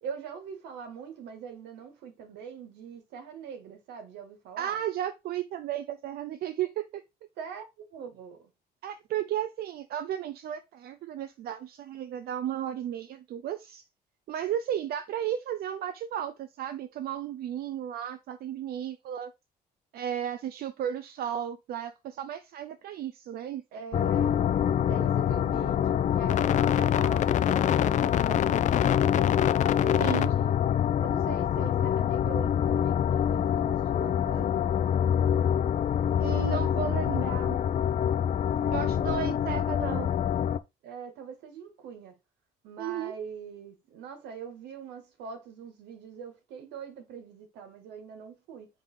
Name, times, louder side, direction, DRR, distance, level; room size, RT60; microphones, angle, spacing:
voice 1, 0.0-4.8 7.4-7.6 7.9-8.5 23.7-24.4 24.9-29.4 29.8-30.6 31.0-34.8 38.6-39.7 40.8-42.2 42.6-48.7, right 6 dB, 85° right, 1.9 m, -43 dB
voice 2, 4.6-7.0 8.8-13.8 14.3-19.3 19.9-23.6 30.0-30.3 36.2-37.6 38.7-40.1 42.8-43.1, right 10 dB, 65° right, 0.7 m, -34 dB
sound 1, 23.9-40.6, left 9 dB, 45° left, 0.5 m, -25 dB
4.9 x 3.8 x 5.6 m
cardioid pair, 110°, 17 cm